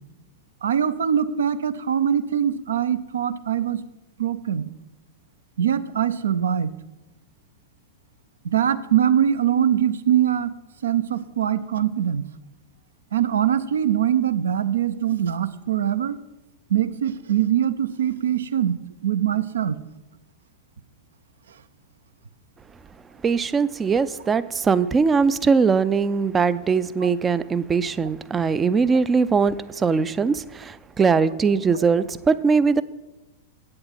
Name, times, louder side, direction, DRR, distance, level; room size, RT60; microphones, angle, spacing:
voice 1, 0.6-3.8 4.2-4.7 5.6-6.7 8.4-10.5 10.8-12.3 13.1-16.2 16.7-18.8 19.0-19.8 27.0-27.1 31.7-31.8, right 9 dB, 65° right, 14 dB, 0.6 m, -22 dB
voice 2, 23.2-32.8, right 5 dB, 20° right, 17 dB, 0.4 m, -21 dB
8.7 x 7.7 x 5.8 m, 1.0 s
figure-of-eight pair, 95°, 0 cm